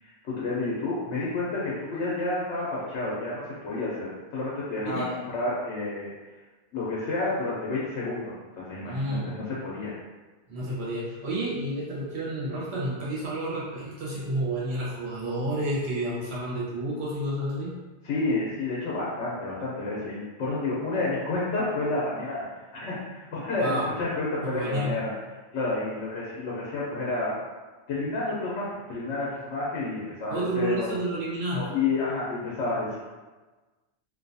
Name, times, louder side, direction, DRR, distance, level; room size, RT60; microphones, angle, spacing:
voice 1, 0.2-6.1 6.7-9.9 18.0-22.5 22.7-25.1 25.5-27.3 27.9-30.9 31.5-33.0, left 3 dB, 90° left, -7 dB, 1.0 m, -30 dB
voice 2, 4.8-5.2 8.8-9.3 10.5-17.7 23.6-23.9 24.4-24.9 30.3-31.7, right 1 dB, 70° right, -7 dB, 1.1 m, -30 dB
2.6 x 2.3 x 2.6 m, 1.3 s
omnidirectional pair, 1.1 m